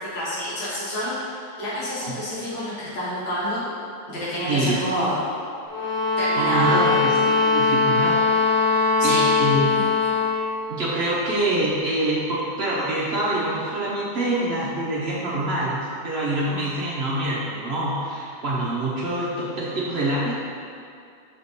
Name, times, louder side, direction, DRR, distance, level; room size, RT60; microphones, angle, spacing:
voice 1, 0.1-1.1 1.6-3.6 4.1-5.2 6.2-7.0 9.0-9.2 9.7-9.8, equal, 70° left, -10 dB, 2.3 m, -28 dB
voice 2, 4.5-4.8 6.3-8.2 9.0-9.8 10.7-15.8 16.0-20.4, right 1 dB, 60° right, -6 dB, 0.6 m, -25 dB
sound 1, 5.7-10.4, left 3 dB, 5° left, 0.6 m, -20 dB
6.7 x 3.6 x 4.0 m, 2.4 s
omnidirectional pair, 2.2 m